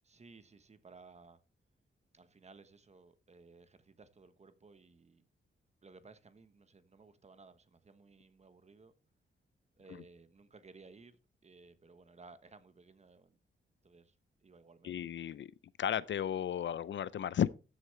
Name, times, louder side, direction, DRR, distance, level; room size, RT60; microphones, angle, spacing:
voice 1, 0.1-1.4 2.1-5.2 5.8-8.9 9.8-13.4 13.8-14.1 14.4-14.9, right 4 dB, 30° right, 1.1 m, -58 dB
voice 2, 14.8-15.5 15.8-17.5, left 9 dB, 65° left, 0.5 m, -34 dB
13.5 x 8.0 x 3.2 m
wide cardioid pair, 135°, 21 cm